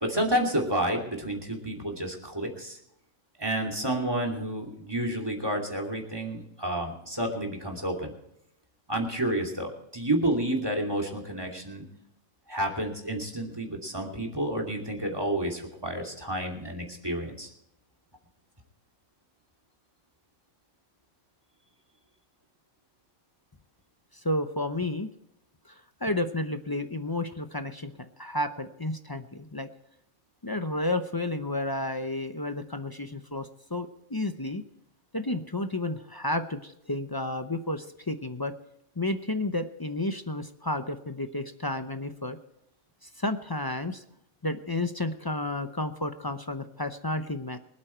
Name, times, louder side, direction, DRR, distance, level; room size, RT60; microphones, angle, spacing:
voice 1, 0.0-2.8 3.4-8.1 8.9-11.8 12.5-17.5, right 1 dB, 15° right, 3 dB, 2.8 m, -30 dB
voice 2, 24.2-25.1 25.7-25.8 26.0-27.9 28.2-29.7 30.4-34.6 35.1-38.5 39.0-42.4 43.2-44.0 44.4-47.6, left 1 dB, 25° left, 9 dB, 0.5 m, -31 dB
24.0 x 8.6 x 4.5 m, 0.80 s
omnidirectional pair, 1.5 m